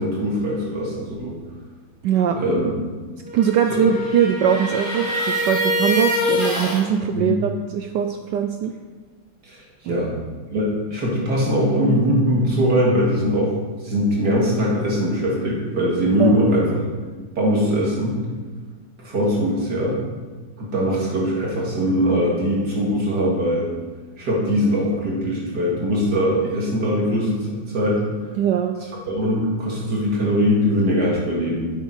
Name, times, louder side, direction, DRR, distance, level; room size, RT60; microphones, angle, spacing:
voice 1, 0.0-1.4 2.3-2.7 3.7-3.8 7.1-7.4 9.4-10.1 10.5-13.5 13.8-16.8 17.4-18.2 19.0-20.0 20.6-23.7 24.2-28.0 29.1-31.7, equal, 50° right, -4 dB, 2.7 m, -21 dB
voice 2, 2.0-2.4 3.3-8.7 9.9-10.1 16.2-16.3 28.4-28.7, right 8 dB, 75° right, 7 dB, 1.0 m, -21 dB
sound 1, 3.2-6.8, left 1 dB, 40° left, 2.6 m, -24 dB
9.5 x 7.5 x 4.9 m, 1.4 s
omnidirectional pair, 2.3 m